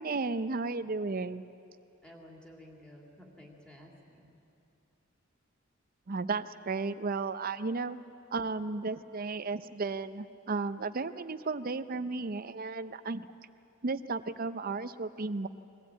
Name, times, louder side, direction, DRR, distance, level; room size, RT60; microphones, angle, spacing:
voice 1, 0.0-1.4 6.1-8.0 8.3-13.3 13.8-15.5, right 3 dB, 45° right, 12 dB, 0.6 m, -34 dB
voice 2, 2.0-4.3, left 1 dB, 5° left, -1 dB, 2.7 m, -53 dB
22.5 x 16.0 x 8.9 m, 2.7 s
head